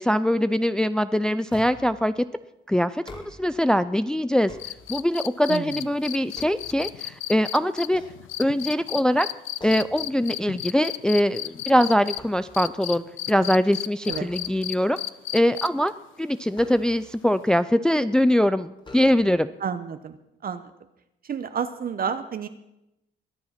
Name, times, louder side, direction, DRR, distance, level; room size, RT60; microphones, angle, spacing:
voice 1, 0.0-2.2 2.7-4.5 4.9-8.0 8.4-9.3 9.6-15.0 15.3-15.9 16.2-19.5, equal, 5° left, 13 dB, 0.4 m, -22 dB
sound 1, 1.5-2.1 2.9-3.7 4.2-5.3 5.8-7.3 7.8-8.8 9.6-10.1 10.5-10.7 11.1-12.8 14.0-14.8 16.5-17.3 18.1-18.2 18.8-19.6, left 2 dB, 25° left, 2.4 m, -46 dB
sound 2, 4.6-12.2 12.5-15.9 17.5-17.6, left 14 dB, 80° left, 0.5 m, -33 dB
voice 2, 5.5-5.8 14.1-14.3 19.6-20.2 20.4-20.7 21.2-22.5, right 7 dB, 45° right, 10 dB, 0.9 m, -30 dB
22.0 x 7.7 x 5.8 m, 0.89 s
cardioid pair, 90°, 20 cm